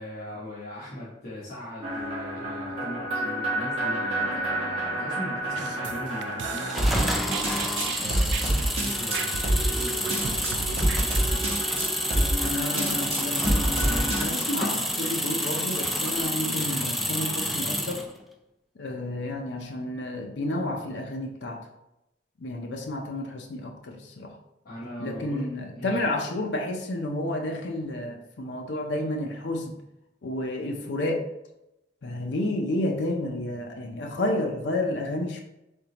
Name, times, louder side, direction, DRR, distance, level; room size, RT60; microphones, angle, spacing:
voice 1, 0.0-7.6 8.0-11.5 24.6-26.0, left 1 dB, 50° left, -8 dB, 1.0 m, -39 dB
sound 1, 1.8-14.2, right 1 dB, 35° right, 1.2 m, -28 dB
sound 2, 5.6-11.2, right 6 dB, 80° right, 0.3 m, -37 dB
sound 3, 6.7-18.1, equal, ahead, 0.3 m, -29 dB
voice 2, 12.4-18.0 18.8-21.7 22.4-24.4 25.0-29.8 30.2-31.3 32.0-35.4, left 1 dB, 80° left, 2 dB, 0.5 m, -31 dB
3.8 x 3.6 x 2.9 m, 0.89 s
head